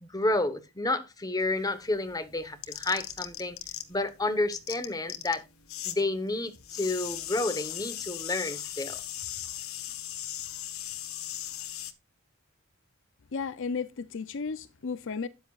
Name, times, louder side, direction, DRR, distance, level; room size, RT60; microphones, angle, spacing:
voice 1, 0.0-3.6 3.9-5.4 5.8-9.0, left 2 dB, 20° left, 1.2 m, -30 dB
sound 1, 1.4-4.1 4.3-6.0 6.3-11.9, left 12 dB, 80° left, 1.1 m, -38 dB
voice 2, 13.3-15.3, left 5 dB, 60° left, 0.6 m, -34 dB
12.5 x 9.5 x 2.4 m
head